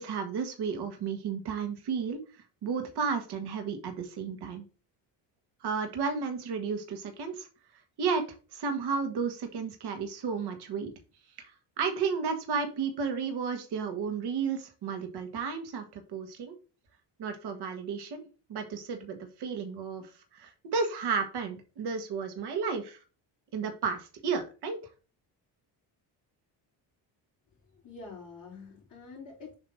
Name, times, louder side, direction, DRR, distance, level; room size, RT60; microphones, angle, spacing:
voice 1, 0.0-2.2 2.6-4.6 5.6-7.5 8.0-8.2 8.5-10.9 11.4-11.5 11.8-16.5 17.2-18.2 18.5-23.0 23.5-24.8, right 5 dB, 60° right, 6 dB, 1.4 m, -33 dB
voice 2, 27.7-29.5, left 4 dB, 40° left, -6 dB, 2.8 m, -46 dB
7.3 x 2.9 x 5.2 m, 0.35 s
cardioid pair, 130°, 44 cm